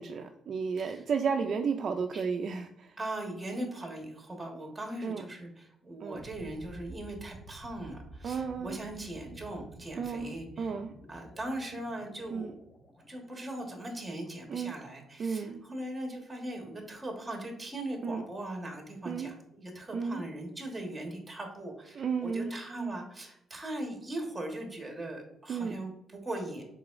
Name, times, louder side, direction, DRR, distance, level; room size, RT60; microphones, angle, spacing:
voice 1, 0.0-2.9 5.0-5.2 6.0-6.2 8.2-8.8 10.0-10.9 12.3-12.5 14.5-14.7 15.2-15.7 18.0-18.2 19.1-19.3 19.9-20.2 22.0-22.5 22.8-22.9 25.5-25.7, right 5 dB, 55° right, 5 dB, 0.3 m, -33 dB
voice 2, 3.0-10.8 11.1-12.6 13.1-26.6, right 1 dB, 10° right, 2 dB, 1.3 m, -40 dB
sound 1, 6.1-15.0, right 1 dB, 30° left, 1.5 m, -52 dB
4.7 x 3.8 x 2.5 m, 0.78 s
cardioid pair, 90°, 0 cm